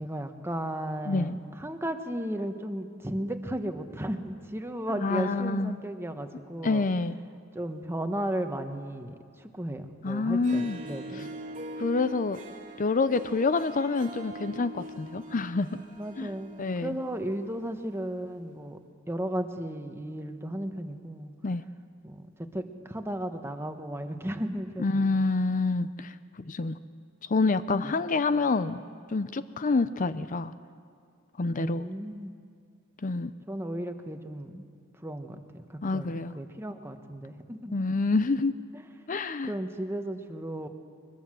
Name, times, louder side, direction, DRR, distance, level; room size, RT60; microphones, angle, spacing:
voice 1, 0.0-6.8 7.5-11.3 16.0-16.5 16.8-18.8 19.1-21.3 22.0-25.1 31.6-32.4 33.5-34.7 35.0-37.7 38.7-38.9 39.4-40.7, right 1 dB, 10° right, 6 dB, 1.3 m, -35 dB
voice 2, 5.0-5.8 6.6-7.2 10.0-10.8 11.8-12.4 12.8-15.8 16.2-16.3 16.6-17.0 21.4-21.6 24.8-26.8 27.3-28.8 29.1-30.5 31.4-31.8 33.0-33.3 35.8-36.3 37.7-38.5 39.1-39.5, left 3 dB, 40° left, 13 dB, 0.6 m, -27 dB
Harp, 10.3-17.7, right 1 dB, 40° right, 1.9 m, -43 dB
23.0 x 21.0 x 7.7 m, 2.2 s
head